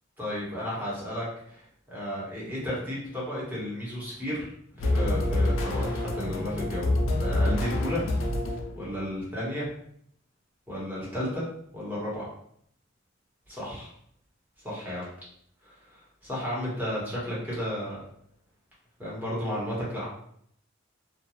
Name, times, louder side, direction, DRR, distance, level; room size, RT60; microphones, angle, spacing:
voice 1, 0.2-1.6 1.9-6.9 7.2-8.0 8.7-9.6 10.7-11.4 11.7-12.2 13.5-13.9 14.6-15.0 15.6-18.0 19.0-20.1, equal, 10° right, -7 dB, 1.0 m, -33 dB
sound 1, 4.8-9.0, left 1 dB, 80° left, 0.4 m, -27 dB
2.4 x 2.3 x 2.9 m, 0.67 s
head